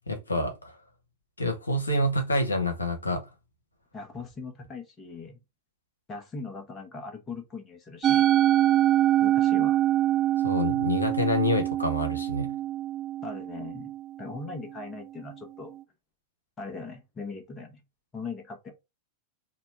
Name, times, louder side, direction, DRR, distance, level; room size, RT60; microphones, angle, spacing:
voice 1, 0.1-0.8 1.4-3.2 10.4-12.5, left 1 dB, 80° left, 0.9 m, -27 dB
voice 2, 3.9-5.4 6.1-8.3 9.2-9.8 13.2-13.9 14.2-15.8 16.6-17.8 18.1-18.7, left 4 dB, 20° left, 1.0 m, -40 dB
Musical instrument, 8.0-14.4, right 13 dB, 30° right, 0.4 m, -24 dB
4.0 x 2.3 x 4.3 m
figure-of-eight pair, 90°, 0 cm